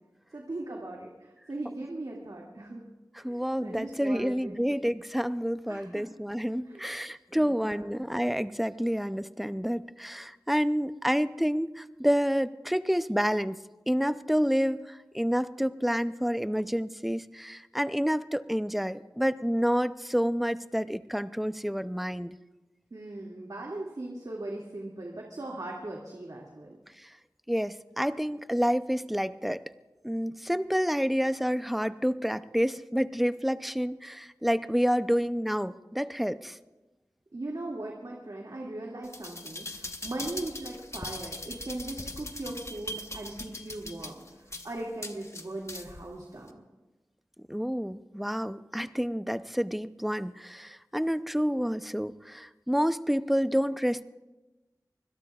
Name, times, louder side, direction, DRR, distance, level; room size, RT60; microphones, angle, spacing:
voice 1, 0.3-2.8 3.2-4.8 5.7-6.0 6.7-6.8 7.3-7.8 22.9-26.8 37.3-46.6, right 2 dB, 70° right, -2 dB, 2.3 m, -39 dB
voice 2, 3.1-13.6 13.9-22.4 27.0-27.1 27.5-29.6 30.0-36.6 47.5-54.0, equal, ahead, 12 dB, 0.6 m, -29 dB
sound 1, 39.0-46.0 46.5-46.6, left 1 dB, 45° left, 1.1 m, -40 dB
24.5 x 21.0 x 2.4 m, 1.1 s
wide cardioid pair, 55°, 7 cm